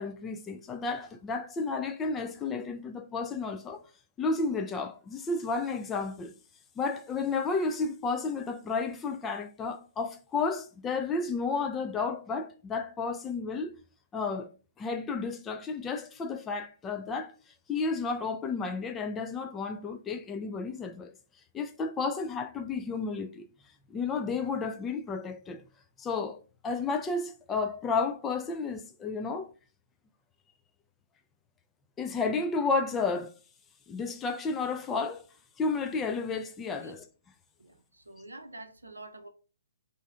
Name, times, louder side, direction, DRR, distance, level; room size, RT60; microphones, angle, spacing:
voice 1, 0.0-3.8 4.2-6.3 6.8-13.8 14.1-14.5 14.8-17.3 17.7-21.1 21.5-23.5 23.9-25.6 26.0-26.4 26.6-29.5 32.0-33.3 33.9-35.2 35.6-37.0, left 4 dB, 15° left, 0.4 m, -32 dB
voice 2, 37.6-39.3, right 2 dB, 80° right, 0.6 m, -47 dB
3.1 x 2.7 x 3.5 m
figure-of-eight pair, 125°, 0 cm